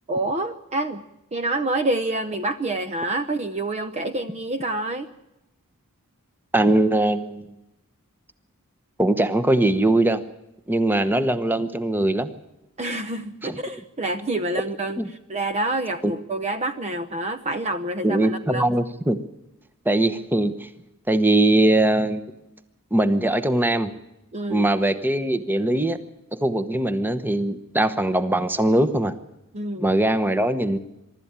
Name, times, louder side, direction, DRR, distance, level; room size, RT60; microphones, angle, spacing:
voice 1, 0.1-1.0 1.3-5.1 12.8-18.8 24.3-24.7 29.5-29.9, right 2 dB, 30° right, 10 dB, 0.7 m, -27 dB
voice 2, 6.5-7.5 9.0-10.2 10.7-12.3 13.4-13.6 15.0-15.1 16.0-16.1 18.0-19.2 19.8-20.7 21.1-22.3 22.9-23.9 24.5-26.0 26.4-29.1 29.8-30.8, right 1 dB, 10° right, 11 dB, 1.0 m, -21 dB
23.5 x 12.5 x 8.9 m, 0.91 s
head